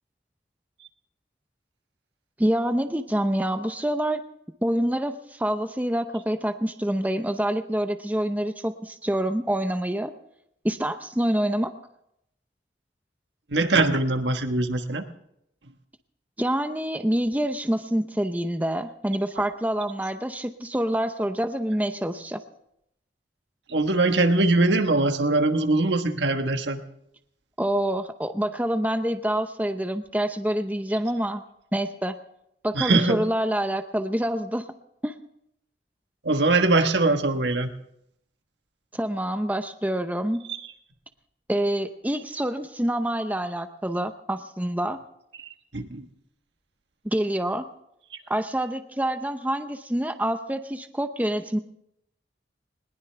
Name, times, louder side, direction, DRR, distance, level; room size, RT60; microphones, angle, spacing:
voice 1, 2.4-4.2 4.6-10.1 10.6-11.7 16.4-22.4 27.6-31.4 31.7-32.2 32.6-34.6 35.0-35.1 38.9-40.4 41.5-45.0 47.0-47.6 48.3-51.6, right 1 dB, 10° right, 8 dB, 0.7 m, -26 dB
voice 2, 13.5-15.0 23.7-26.8 32.7-33.2 36.2-37.7 45.4-46.0, right 2 dB, 80° right, 7 dB, 1.4 m, -22 dB
20.5 x 19.5 x 3.4 m, 0.77 s
head